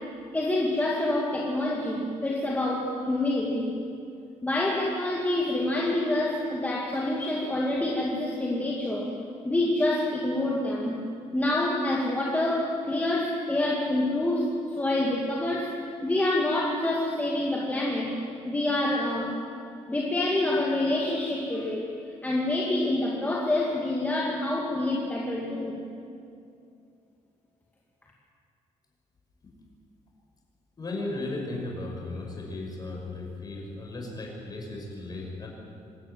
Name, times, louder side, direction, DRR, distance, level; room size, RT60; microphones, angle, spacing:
voice 1, 0.3-3.8 4.4-9.1 9.4-11.0 11.3-18.1 18.4-19.4 19.9-21.9 22.2-25.8, left 1 dB, 10° left, -3 dB, 2.2 m, -27 dB
voice 2, 30.8-35.5, left 2 dB, 30° left, 0 dB, 5.4 m, -35 dB
25.5 x 13.5 x 9.1 m, 2.5 s
cardioid pair, 150°, 13 cm